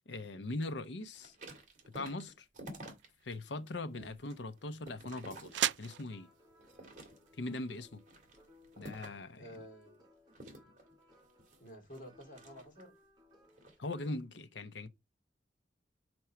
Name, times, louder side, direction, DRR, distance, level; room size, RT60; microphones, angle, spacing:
voice 1, 0.1-1.3 1.9-2.5 3.2-6.3 7.4-8.0 8.8-9.5 13.8-14.9, left 2 dB, 80° left, 0.8 m, -41 dB
sound 1, 1.1-3.4 3.8-6.1 6.6-7.5 8.0-9.3 10.3-13.0 13.5-13.8, right 1 dB, 45° right, 2.3 m, -51 dB
sound 2, 2.9-8.8, right 12 dB, 80° right, 0.3 m, -42 dB
sound 3, 5.4-14.2, left 1 dB, 25° right, 3.9 m, -64 dB
voice 2, 9.4-10.1 11.6-12.9, equal, 45° left, 2.8 m, -51 dB
6.1 x 4.5 x 5.7 m
head